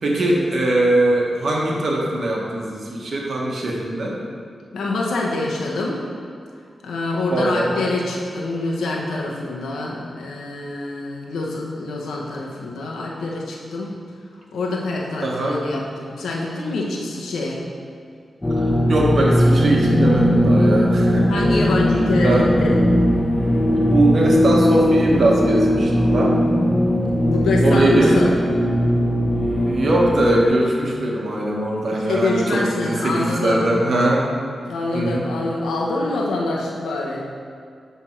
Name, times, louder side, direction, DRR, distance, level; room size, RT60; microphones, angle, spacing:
voice 1, 0.0-4.1 7.3-7.9 15.2-15.6 18.5-21.3 22.2-22.5 23.7-26.3 27.6-28.2 29.7-34.2 34.9-35.2, right 1 dB, 65° right, -2 dB, 1.3 m, -20 dB
voice 2, 4.7-6.0 6.8-13.9 14.5-17.6 21.3-22.8 27.0-28.3 31.9-33.6 34.6-37.2, left 2 dB, 90° left, -2 dB, 1.0 m, -25 dB
sound 1, 18.4-30.5, equal, 25° left, 1.2 m, -18 dB
10.5 x 3.5 x 4.5 m, 2.3 s
cardioid pair, 50°, 0 cm